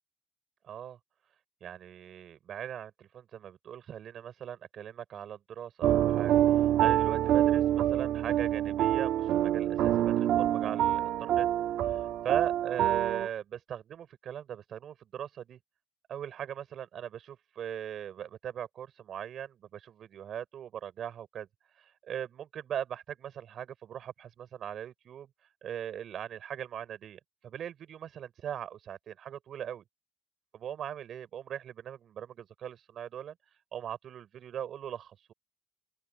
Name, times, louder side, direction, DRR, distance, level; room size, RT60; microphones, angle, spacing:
voice 1, 0.6-1.0 1.6-11.5 11.8-15.6 16.1-21.5 21.8-25.3 25.6-29.8 30.5-33.3 33.7-35.3, right 9 dB, 65° right, 6.3 m, -40 dB
sound 1, 5.8-13.3, right 12 dB, 85° right, 1.8 m, -26 dB
open air
cardioid pair, 90°, 0 cm